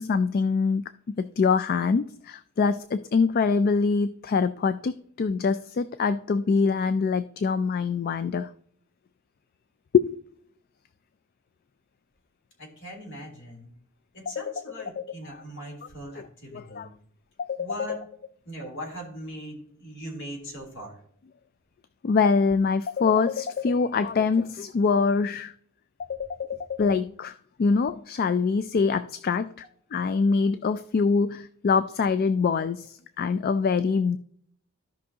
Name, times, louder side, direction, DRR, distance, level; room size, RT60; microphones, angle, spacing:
voice 1, 0.0-8.5 9.9-10.2 14.3-14.4 15.0-15.1 16.2-16.3 16.5-16.9 17.4-17.7 22.0-25.5 26.1-29.7 29.9-34.2, left 5 dB, 45° left, 13 dB, 0.3 m, -24 dB
voice 2, 12.6-13.7 14.1-16.9 17.6-18.0 18.4-21.0, equal, 60° left, -1 dB, 3.3 m, -40 dB
15.0 x 5.6 x 2.8 m, 0.63 s
head